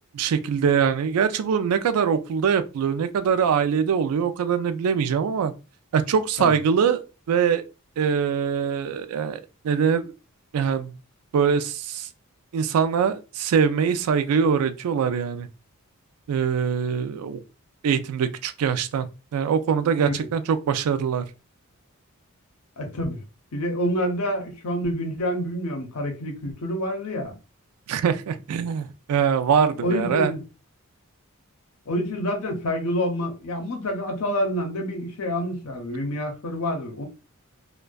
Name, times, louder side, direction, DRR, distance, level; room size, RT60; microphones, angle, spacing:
voice 1, 0.1-5.5 5.9-7.6 8.0-9.4 9.6-10.1 10.5-10.9 11.3-12.1 12.5-15.5 16.3-17.4 17.8-19.1 19.3-21.2 27.9-30.3, right 7 dB, 85° right, 0.3 m, -23 dB
voice 2, 22.8-23.2 23.5-27.3 29.8-30.4 31.9-37.0, equal, 90° left, 0.7 m, -27 dB
2.5 x 2.2 x 2.3 m
head